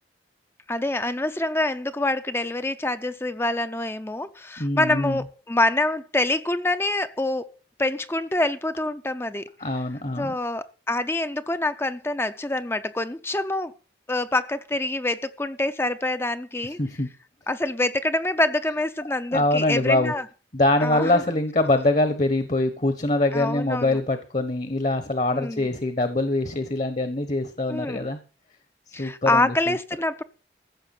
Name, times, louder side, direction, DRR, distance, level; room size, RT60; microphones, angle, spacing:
voice 1, 0.7-7.5 7.8-9.5 10.1-13.7 14.1-16.8 17.5-20.2 20.8-21.1 23.3-24.0 25.3-25.7 27.7-28.1 28.9-30.2, left 2 dB, 15° left, 0.6 m, -26 dB
voice 2, 4.6-5.2 9.6-10.4 16.6-17.1 19.3-20.1 20.5-28.2 29.0-29.8, left 2 dB, 40° left, 1.1 m, -24 dB
15.0 x 6.7 x 7.2 m
head